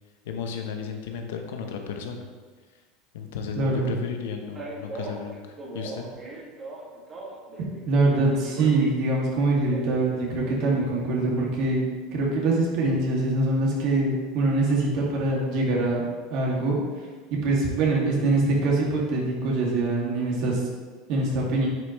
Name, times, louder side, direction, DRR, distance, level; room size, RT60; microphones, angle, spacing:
voice 1, 0.2-2.3 3.1-6.1, left 6 dB, 75° left, 4 dB, 0.9 m, -34 dB
voice 2, 3.6-3.9 7.9-11.8 12.1-16.0 16.3-16.8 17.3-20.6 21.1-21.7, right 2 dB, 60° right, -3 dB, 2.2 m, -24 dB
Male speech man speaking, 4.6-7.8 8.1-11.4, right 2 dB, 30° right, 2.0 m, -40 dB
9.3 x 5.2 x 3.1 m, 1.4 s
hypercardioid pair, 90°, 0 cm